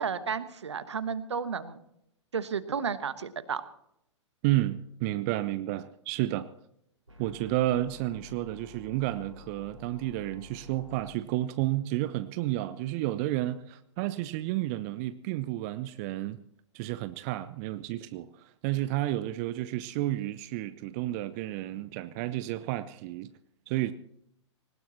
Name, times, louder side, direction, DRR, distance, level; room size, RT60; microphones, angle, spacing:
voice 1, 0.0-1.8 2.3-3.6, right 6 dB, 65° right, 1.2 m, -32 dB
voice 2, 4.4-6.5 7.2-16.4 16.7-23.3 23.7-23.9, right 15 dB, 30° right, 0.5 m, -31 dB
sound 1, 7.1-11.1, left 4 dB, 85° right, 4.8 m, -50 dB
21.0 x 19.0 x 2.9 m
figure-of-eight pair, 110°, 16 cm